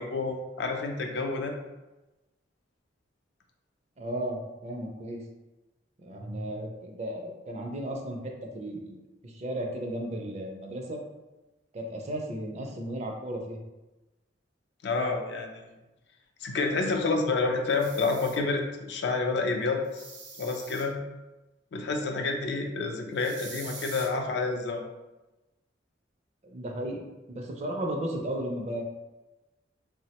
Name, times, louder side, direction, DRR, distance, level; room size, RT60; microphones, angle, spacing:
voice 1, 0.0-1.5 14.8-15.6 16.4-20.0 20.4-21.0 21.7-24.8, left 3 dB, 65° left, 3 dB, 0.4 m, -29 dB
voice 2, 4.0-5.2 6.0-9.0 9.2-11.0 11.7-13.6 26.4-27.0 27.3-28.8, right 1 dB, 35° right, 1 dB, 0.4 m, -34 dB
sound 1, 17.7-18.4 19.8-20.8 23.2-24.1, right 4 dB, 70° right, 0.7 m, -44 dB
3.3 x 2.0 x 2.8 m, 1.1 s
head